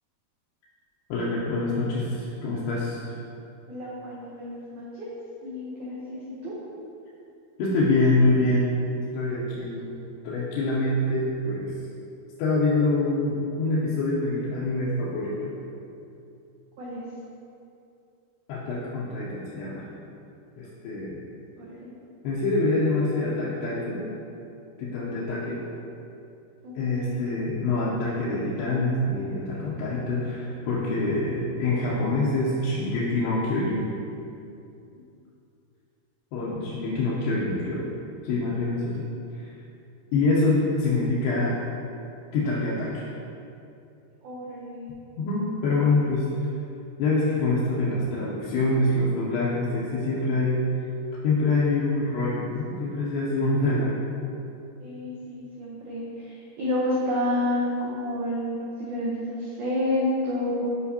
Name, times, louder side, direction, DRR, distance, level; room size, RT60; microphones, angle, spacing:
voice 1, 1.1-3.1 7.6-11.7 12.4-15.6 18.5-19.9 20.6-21.2 22.2-24.0 24.8-25.6 26.8-33.9 36.3-37.8 38.2-39.0 39.3-39.5 40.1-41.6 42.3-43.1 45.2-46.3 47.0-50.6 51.2-54.0, left 2 dB, 85° left, -8 dB, 2.8 m, -25 dB
voice 2, 3.7-5.1 5.4-6.5 16.8-17.0 21.6-21.9 26.6-27.1 44.2-44.9 54.8-60.6, left 1 dB, 85° right, -7 dB, 1.7 m, -30 dB
8.1 x 5.1 x 2.8 m, 2.7 s
omnidirectional pair, 4.8 m